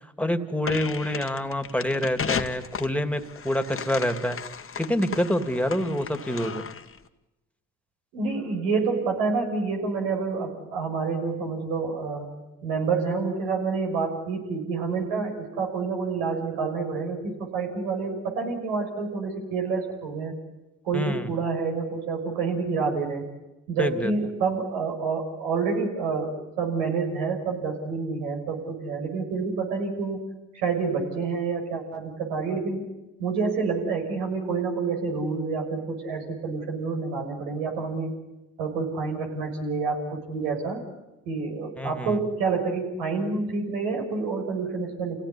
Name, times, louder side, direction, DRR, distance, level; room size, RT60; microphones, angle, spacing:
voice 1, 0.2-4.4 4.8-6.7 20.9-21.3 23.8-24.1 41.8-42.2, left 1 dB, 5° left, 9 dB, 2.7 m, -27 dB
sound 1, 0.6-7.0, left 6 dB, 35° left, 1.8 m, -35 dB
voice 2, 8.1-12.3 12.6-20.4 20.8-23.2 23.7-30.2 30.5-32.9 33.2-38.1 38.6-40.8 41.2-45.2, right 4 dB, 85° right, 2 dB, 6.4 m, -28 dB
28.0 x 17.5 x 9.9 m, 1.0 s
hypercardioid pair, 60°, 36 cm